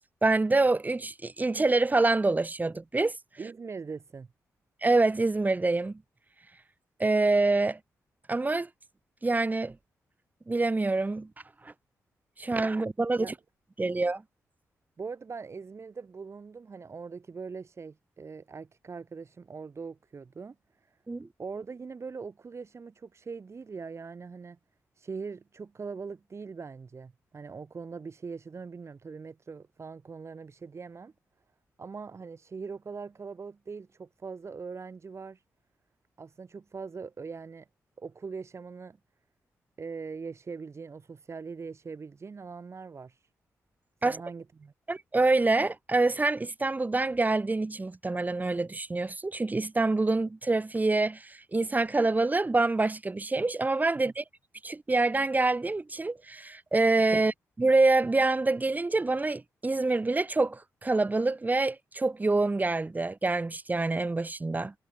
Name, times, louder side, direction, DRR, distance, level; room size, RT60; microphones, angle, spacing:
voice 1, 0.2-3.1 4.8-6.0 7.0-7.8 8.3-8.7 9.2-9.8 10.5-11.3 11.6-11.7 12.4-13.3 13.8-14.2 21.1-21.3 44.0-44.2 44.9-54.2 54.6-64.7, right 3 dB, 25° right, 3.5 m, -26 dB
voice 2, 3.4-4.3 13.2-13.3 15.0-20.6 20.8-21.0 21.4-24.6 25.0-31.1 31.8-35.4 36.2-37.7 38.0-39.0 39.8-43.3 44.0-44.7 57.1-57.2, right 5 dB, 45° right, 4.3 m, -41 dB
cardioid pair, 65°, 6 cm